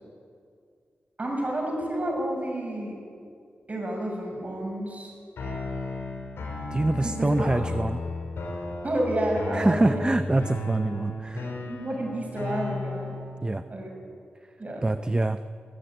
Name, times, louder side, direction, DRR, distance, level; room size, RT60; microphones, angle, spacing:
voice 1, 1.2-3.0 3.7-5.1 7.0-7.5 8.8-10.0 11.7-13.1 13.7-13.9 14.6-14.9, right 1 dB, 40° right, 0 dB, 7.2 m, -30 dB
sound 1, 5.4-13.4, left 2 dB, 90° left, 5.2 m, -34 dB
voice 2, 6.7-8.0 9.5-11.5 13.4-13.6 14.8-15.4, right 2 dB, 20° right, 10 dB, 0.7 m, -25 dB
21.0 x 15.0 x 9.1 m, 2.3 s
cardioid pair, 60°, 4 cm